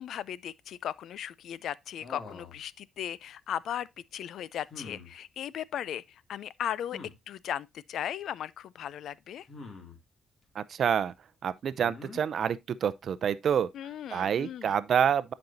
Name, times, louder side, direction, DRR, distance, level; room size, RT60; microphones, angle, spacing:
voice 1, 0.0-7.0 7.3-9.5 13.7-14.8, left 10 dB, 70° left, 0.4 m, -37 dB
sound 1, 2.0-2.6 4.7-5.1 6.9-7.1 9.5-10.0 11.8-12.2, left 4 dB, 50° left, 2.3 m, -45 dB
voice 2, 10.5-11.1 11.4-13.7 14.1-15.3, right 8 dB, 60° right, 0.5 m, -27 dB
10.5 x 5.3 x 2.7 m
cardioid pair, 90°, 0 cm